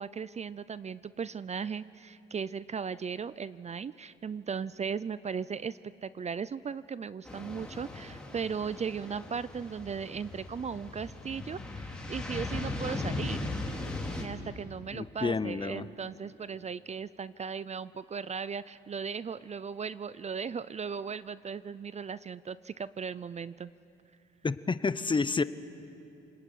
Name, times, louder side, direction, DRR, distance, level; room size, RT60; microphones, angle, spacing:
voice 1, 0.0-13.4 14.2-23.7, right 6 dB, 35° right, 17 dB, 0.5 m, -37 dB
sound 1, 7.3-14.2, left 2 dB, 5° left, 3.9 m, -38 dB
voice 2, 14.9-15.8 24.4-25.4, left 4 dB, 25° left, 14 dB, 0.9 m, -29 dB
29.0 x 20.0 x 9.2 m, 2.7 s
cardioid pair, 90°, 20 cm